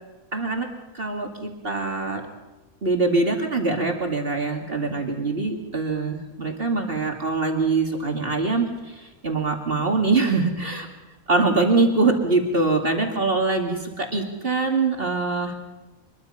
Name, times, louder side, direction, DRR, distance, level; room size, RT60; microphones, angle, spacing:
voice 1, 0.3-0.7 0.9-2.2 2.8-8.7 8.9-10.9 11.3-15.5, right 3 dB, 40° right, 2 dB, 2.5 m, -23 dB
25.0 x 22.0 x 5.6 m, 1.1 s
omnidirectional pair, 1.5 m